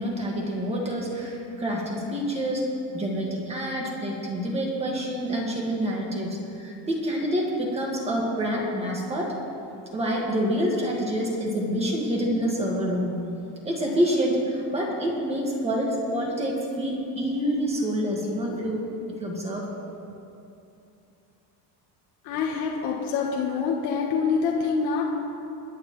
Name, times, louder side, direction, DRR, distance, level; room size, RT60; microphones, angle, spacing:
voice 1, 0.0-2.7 2.9-9.3 9.9-13.2 13.6-18.8 19.2-19.7, equal, 15° right, -2 dB, 1.7 m, -27 dB
voice 2, 22.2-25.0, left 5 dB, 60° left, -1 dB, 1.4 m, -26 dB
28.0 x 9.8 x 3.1 m, 2.7 s
cardioid pair, 180°, 44 cm